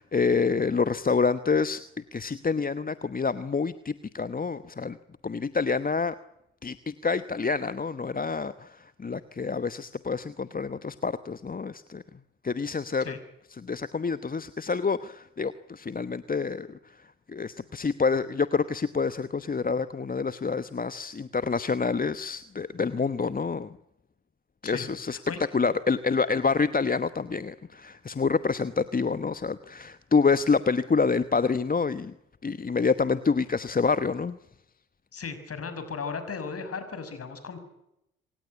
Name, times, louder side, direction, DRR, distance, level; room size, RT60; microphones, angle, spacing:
voice 1, 0.0-1.8 2.1-5.0 5.2-6.1 6.6-12.0 12.4-13.0 13.6-16.8 17.3-23.8 24.6-25.2 25.5-32.1 32.4-34.4, left 5 dB, 25° left, 14 dB, 1.1 m, -27 dB
voice 2, 24.6-25.4 35.1-37.6, left 5 dB, 45° left, 10 dB, 6.1 m, -36 dB
27.0 x 16.5 x 9.8 m, 0.84 s
hypercardioid pair, 45°, 32 cm